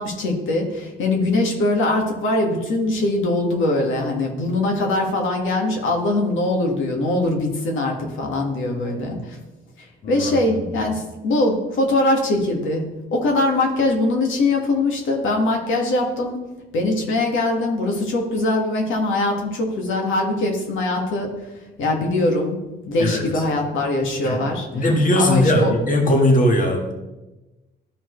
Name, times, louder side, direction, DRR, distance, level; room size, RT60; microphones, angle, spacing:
voice 1, 0.0-9.4 10.1-12.8 13.1-16.4 16.7-21.3 21.8-22.6 22.9-25.7, left 2 dB, 80° left, 1 dB, 1.6 m, -22 dB
voice 2, 10.0-10.6 23.0-23.2 24.2-26.9, left 1 dB, 40° left, 2 dB, 1.6 m, -19 dB
12.5 x 4.5 x 3.1 m, 1.1 s
cardioid pair, 90°, 20 cm